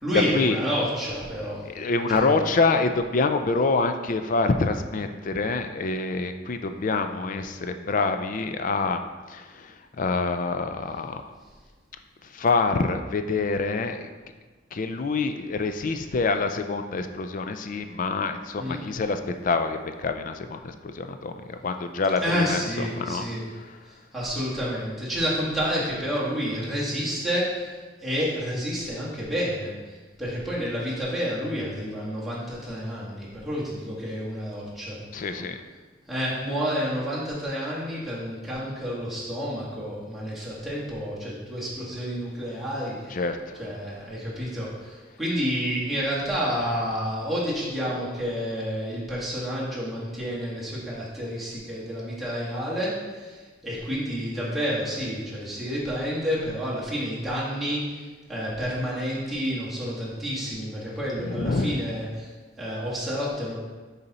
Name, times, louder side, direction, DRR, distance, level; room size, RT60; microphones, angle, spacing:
voice 1, 0.0-1.6 2.1-2.4 18.6-18.8 22.2-23.4 23.8-35.3 36.1-43.2 43.6-62.3 62.6-63.5, equal, ahead, -8 dB, 1.7 m, -29 dB
voice 2, 1.7-9.0 9.3-11.2 12.3-14.1 14.7-23.2 23.7-23.8 35.1-35.6 43.1-43.6 61.2-61.8, left 3 dB, 45° left, 7 dB, 0.4 m, -26 dB
6.7 x 4.1 x 4.1 m, 1.4 s
head